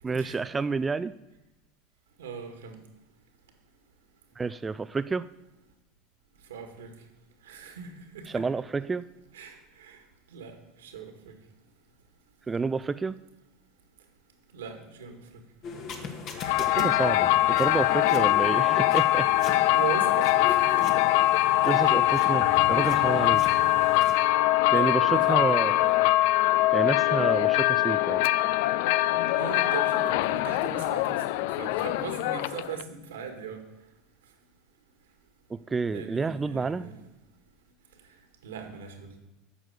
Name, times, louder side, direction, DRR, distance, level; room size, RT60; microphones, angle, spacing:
voice 1, 0.0-1.1 4.4-5.3 8.3-9.0 12.5-13.2 16.6-17.2 17.6-19.3 21.6-23.4 24.7-25.8 26.7-28.2 35.5-36.9, right 4 dB, 20° right, 12 dB, 0.4 m, -29 dB
voice 2, 2.2-2.8 6.5-6.9 7.5-8.2 9.3-10.0 10.3-10.6 10.8-11.3 14.5-15.1 16.4-16.9 18.5-18.7 19.7-20.9 21.7-22.0 23.6-23.9 24.6-25.9 29.3-33.6 35.9-37.0 38.4-39.2, right 6 dB, 90° right, 5 dB, 1.9 m, -39 dB
sound 1, 15.6-24.2, left 5 dB, 50° left, 1.7 m, -39 dB
sound 2, 16.4-32.8, left 16 dB, 70° left, 0.3 m, -23 dB
9.2 x 6.2 x 8.1 m, 0.99 s
hypercardioid pair, 95°, 0 cm